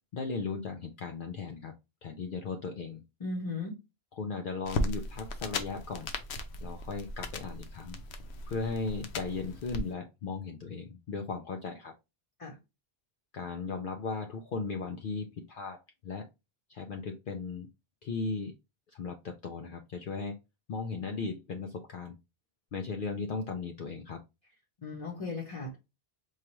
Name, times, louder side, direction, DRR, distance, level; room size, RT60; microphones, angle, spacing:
voice 1, 0.1-1.7 2.0-3.0 4.2-6.1 6.6-8.0 8.5-11.9 13.3-16.2 16.7-17.7 18.0-18.5 18.9-20.4 20.7-22.2 22.7-24.2, left 4 dB, 60° left, 3 dB, 0.6 m, -37 dB
voice 2, 3.2-3.8 12.4-12.6 24.8-25.8, left 3 dB, 35° left, -2 dB, 0.9 m, -36 dB
sound 1, 4.6-9.8, left 2 dB, 90° left, 0.9 m, -37 dB
4.7 x 2.4 x 2.9 m, 0.25 s
omnidirectional pair, 1.1 m